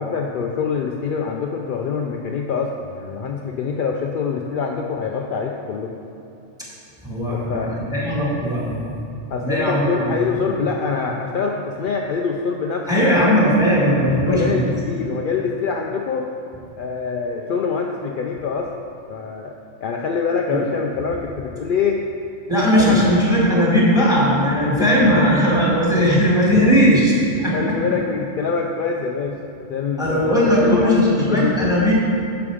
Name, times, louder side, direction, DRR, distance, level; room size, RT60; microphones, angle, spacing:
voice 1, 0.0-5.9 7.3-7.7 9.3-13.1 14.2-16.3 16.8-18.7 19.1-19.5 19.8-22.0 22.7-23.1 24.8-25.1 27.5-29.4 29.7-31.6, left 5 dB, 60° left, 1 dB, 0.5 m, -25 dB
voice 2, 7.0-8.7 9.4-10.1 12.9-14.7 20.5-20.6 22.5-27.7 30.0-31.9, equal, 5° right, -6 dB, 2.4 m, -18 dB
10.0 x 6.9 x 5.0 m, 2.6 s
omnidirectional pair, 1.4 m